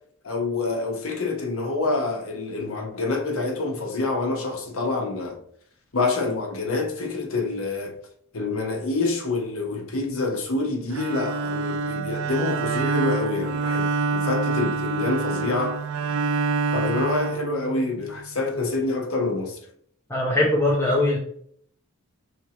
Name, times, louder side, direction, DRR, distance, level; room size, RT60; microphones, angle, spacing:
voice 1, 0.2-5.4 5.9-8.0 8.3-15.8 16.7-19.6, left 3 dB, 75° left, 1.0 m, -27 dB
Bowed string instrument, 10.9-18.1, right 4 dB, 75° right, 0.4 m, -26 dB
voice 2, 20.1-21.2, left 1 dB, 10° left, 0.6 m, -21 dB
4.5 x 3.3 x 2.9 m
head